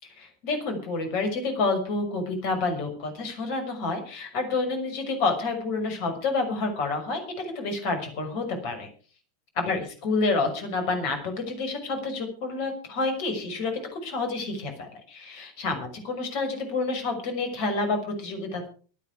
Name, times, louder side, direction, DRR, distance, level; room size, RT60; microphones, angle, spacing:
voice 1, 0.0-8.9 9.6-18.7, left 3 dB, 45° left, 6 dB, 6.1 m, -29 dB
24.0 x 9.4 x 4.9 m, 0.40 s
figure-of-eight pair, 90°, 0 cm